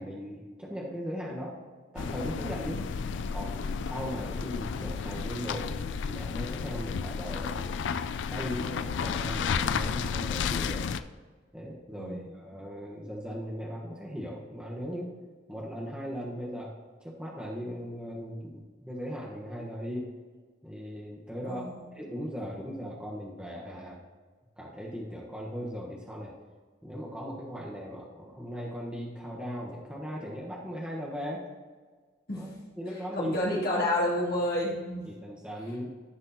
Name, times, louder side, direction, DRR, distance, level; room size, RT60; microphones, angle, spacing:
voice 1, 0.0-1.5 1.9-2.9 3.3-10.9 11.5-15.1 15.5-20.1 20.6-21.6 21.9-24.0 24.6-26.3 26.8-31.5 32.3-32.5 32.8-33.3 33.7-33.8 35.0-35.9, equal, 5° right, -4 dB, 1.3 m, -38 dB
sound 1, 2.0-11.0, left 6 dB, 70° left, 0.4 m, -32 dB
voice 2, 2.7-3.3 12.0-12.4 21.4-21.8 32.3-32.5 33.2-35.1, left 1 dB, 55° left, -6 dB, 3.1 m, -30 dB
14.5 x 6.2 x 3.0 m, 1.4 s
head